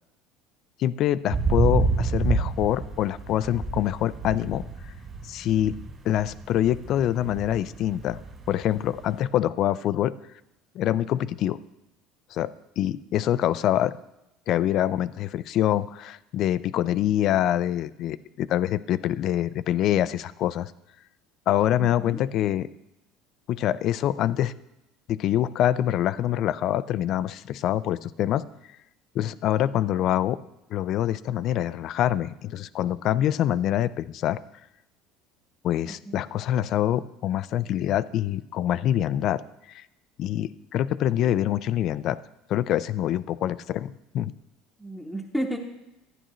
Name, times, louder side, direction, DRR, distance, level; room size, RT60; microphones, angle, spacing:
voice 1, 0.8-4.6 5.3-5.8 6.0-8.2 8.5-10.1 10.8-11.6 12.3-12.5 12.8-13.9 14.5-20.7 21.5-22.7 23.5-24.5 25.1-28.4 29.1-30.4 30.7-34.4 35.6-39.4 39.7-39.8 40.2-42.2 42.5-44.3, left 12 dB, 50° left, 17 dB, 0.3 m, -25 dB
sound 1, 1.3-9.2, right 4 dB, 30° right, 2.2 m, -29 dB
voice 2, 21.8-22.2 35.9-36.2 41.2-41.5 44.8-45.6, equal, ahead, -1 dB, 1.0 m, -33 dB
12.5 x 9.9 x 3.1 m, 0.90 s
cardioid pair, 135°, 0 cm